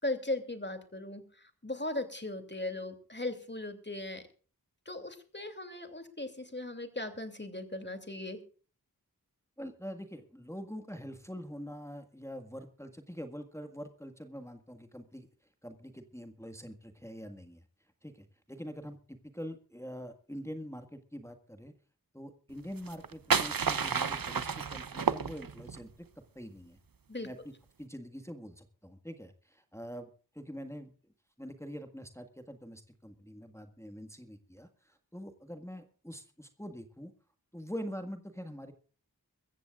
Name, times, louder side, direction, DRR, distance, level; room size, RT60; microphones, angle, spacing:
voice 1, 0.0-4.2 4.9-8.4 27.1-27.3, left 2 dB, 30° left, 7 dB, 2.8 m, -38 dB
voice 2, 9.6-15.3 15.6-17.6 18.0-21.7 22.1-25.9 26.3-26.8 27.2-27.5 27.8-30.1 30.3-30.9 31.4-37.1 37.5-38.7, equal, 5° left, 6 dB, 1.7 m, -44 dB
sound 1, 22.8-25.8, right 6 dB, 65° right, 0.8 m, -31 dB
23.5 x 14.5 x 2.4 m, 0.39 s
wide cardioid pair, 40°, 37 cm